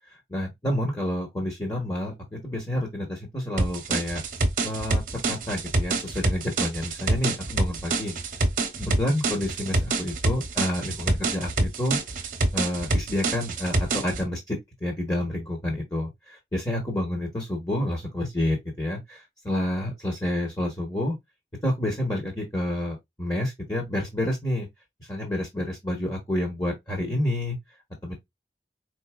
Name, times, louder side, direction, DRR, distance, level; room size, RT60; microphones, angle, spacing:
voice 1, 0.1-4.2 4.6-8.1 8.8-12.0 12.5-21.1 21.6-24.7 25.1-27.6 28.0-28.1, left 1 dB, 20° left, 1.2 m, -29 dB
sound 1, 3.6-14.2, right 2 dB, 45° right, 0.9 m, -26 dB
4.7 x 4.0 x 2.3 m
head